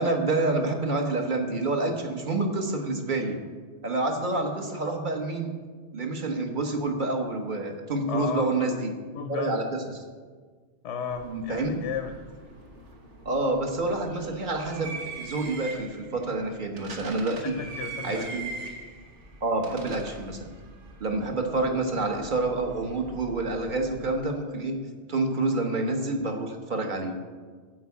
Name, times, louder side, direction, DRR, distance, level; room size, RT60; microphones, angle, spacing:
voice 1, 0.0-3.4 3.8-5.6 5.9-8.9 9.3-10.0 11.2-11.8 13.2-17.6 18.0-18.4 19.4-20.5 21.0-27.1, right 2 dB, 45° right, 4 dB, 1.3 m, -28 dB
voice 2, 8.1-8.8 9.1-9.6 10.8-12.1 17.4-18.4, left 6 dB, 85° left, 6 dB, 1.1 m, -34 dB
sound 1, 11.1-24.1, right 3 dB, 85° right, 1.7 m, -43 dB
11.5 x 4.7 x 8.3 m, 1.5 s
omnidirectional pair, 1.2 m